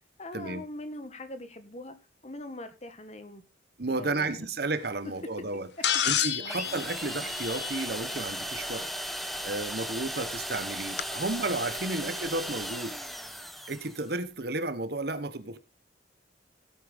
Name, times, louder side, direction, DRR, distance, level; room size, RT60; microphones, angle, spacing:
voice 1, 0.2-2.0 2.2-3.4 3.9-4.5 6.4-6.6 11.9-12.2, left 1 dB, 35° left, 1.6 m, -42 dB
voice 2, 3.8-5.7 6.0-8.9 9.4-13.0 13.7-15.6, right 2 dB, 55° right, 1.1 m, -32 dB
sound 1, 5.8-8.1 9.7-9.8 11.0-11.1, left 9 dB, 65° left, 1.0 m, -29 dB
sound 2, 6.5-14.1, equal, ahead, 1.0 m, -36 dB
16.5 x 8.7 x 3.5 m
head